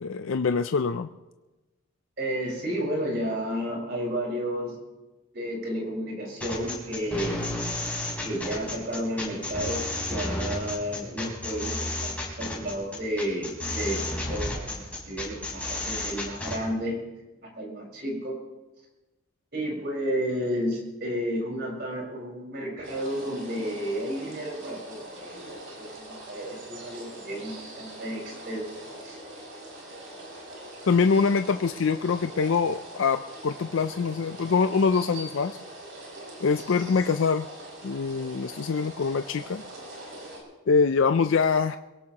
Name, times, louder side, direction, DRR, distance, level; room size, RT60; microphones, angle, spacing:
voice 1, 0.0-1.1 30.9-35.6 36.4-37.5 37.8-39.6 40.7-41.8, left 5 dB, 65° left, 9 dB, 0.4 m, -24 dB
voice 2, 2.2-4.8 5.3-7.4 8.2-17.0 17.4-18.4 19.5-29.2, equal, 50° right, -2 dB, 5.0 m, -32 dB
sound 1, 6.4-16.6, left 1 dB, 5° left, 4.3 m, -32 dB
sound 2, 22.8-40.4, right 1 dB, 65° right, 6.0 m, -43 dB
23.0 x 17.0 x 3.0 m, 1.1 s
head